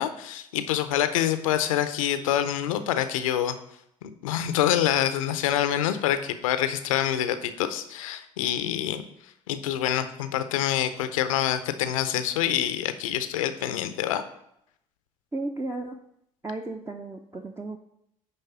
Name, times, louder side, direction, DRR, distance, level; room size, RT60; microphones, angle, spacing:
voice 1, 0.0-3.5 4.0-14.2, left 11 dB, 80° left, 10 dB, 0.6 m, -26 dB
voice 2, 15.3-16.0 16.4-17.8, right 2 dB, 15° right, 3 dB, 0.7 m, -34 dB
9.7 x 3.3 x 5.7 m, 0.76 s
hypercardioid pair, 55°, 17 cm